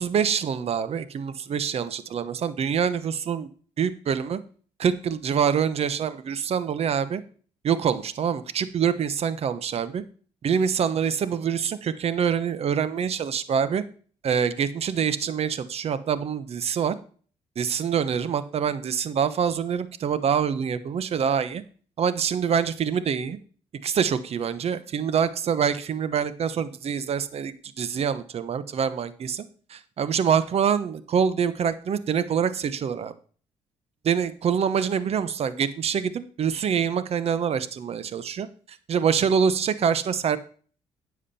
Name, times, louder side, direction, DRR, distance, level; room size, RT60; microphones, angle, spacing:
voice 1, 0.0-3.5 3.8-4.4 4.8-7.2 7.6-10.0 10.4-13.8 14.2-17.0 17.6-21.6 22.0-23.4 23.8-33.1 34.0-40.4, right 7 dB, 55° right, 15 dB, 1.1 m, -25 dB
10.0 x 7.4 x 4.3 m, 0.42 s
supercardioid pair, 70°, 12 cm